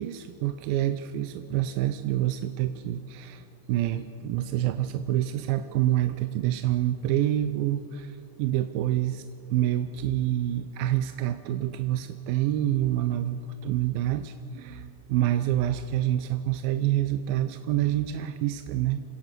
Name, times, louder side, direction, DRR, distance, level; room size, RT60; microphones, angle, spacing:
voice 1, 0.0-9.2 9.5-19.0, right 12 dB, 85° right, 10 dB, 2.5 m, -27 dB
27.5 x 16.5 x 6.7 m, 2.4 s
omnidirectional pair, 4.1 m